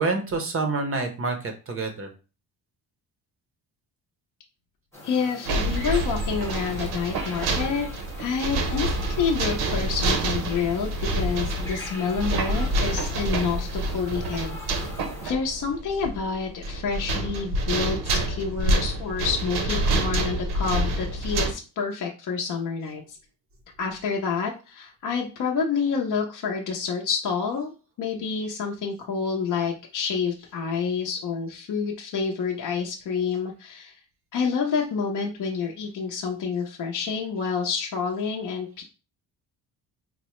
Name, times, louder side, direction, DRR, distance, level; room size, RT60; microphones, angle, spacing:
voice 1, 0.0-2.1, right 3 dB, 35° right, 5 dB, 0.5 m, -27 dB
sound 1, 4.9-15.3, left 1 dB, 5° left, 0.8 m, -42 dB
voice 2, 5.0-7.9 8.2-14.9 15.2-23.2 23.8-27.7 28.0-34.0 34.3-38.8, left 5 dB, 50° left, 0 dB, 0.6 m, -28 dB
sound 2, 5.4-21.5, right 2 dB, 70° right, 0.7 m, -27 dB
4.5 x 2.0 x 3.0 m, 0.32 s
cardioid pair, 165°, 40 cm